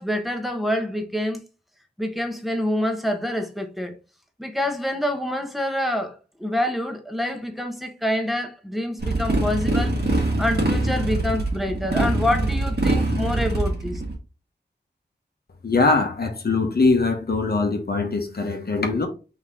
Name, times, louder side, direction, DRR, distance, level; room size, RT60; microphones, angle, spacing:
voice 1, 0.0-1.4 2.0-3.9 4.4-9.9 10.4-14.0, left 1 dB, ahead, 0.9 m, -26 dB
Motorcycle, 9.0-14.1, right 2 dB, 60° right, 1.6 m, -23 dB
voice 2, 15.6-19.1, left 3 dB, 60° left, 0.9 m, -22 dB
4.1 x 3.5 x 3.5 m
wide cardioid pair, 85°, 18 cm